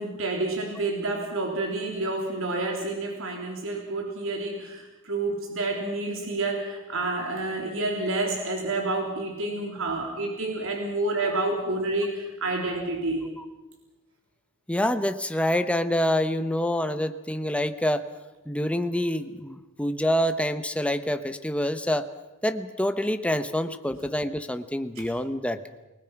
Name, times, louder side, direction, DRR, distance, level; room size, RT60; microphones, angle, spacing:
voice 1, 0.0-13.3, right 2 dB, 65° right, 1 dB, 3.6 m, -29 dB
voice 2, 14.7-18.0 18.5-22.1 22.4-25.6, left 1 dB, 5° left, 9 dB, 1.0 m, -26 dB
30.0 x 19.5 x 6.0 m, 1.1 s
head